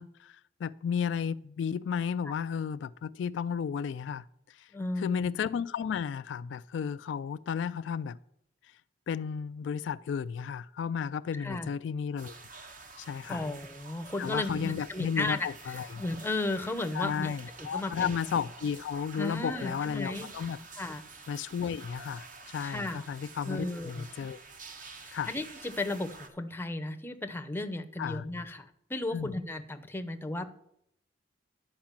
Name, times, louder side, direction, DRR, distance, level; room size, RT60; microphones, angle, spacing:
voice 1, 0.0-4.7 5.0-8.2 9.1-12.4 13.0-13.4 14.2-16.0 16.9-20.6 21.3-22.3 22.5-24.4 25.1-25.3 28.0-28.2 29.1-29.3, left 7 dB, 75° left, 0.3 m, -33 dB
voice 2, 4.7-5.3 11.3-11.7 13.3-15.5 16.0-18.2 19.2-20.3 20.8-21.0 22.6-23.0 23.5-24.1 25.0-30.5, left 2 dB, 10° left, 0.6 m, -35 dB
sound 1, 12.2-26.3, right 4 dB, 45° right, 1.1 m, -49 dB
10.5 x 4.8 x 7.3 m
head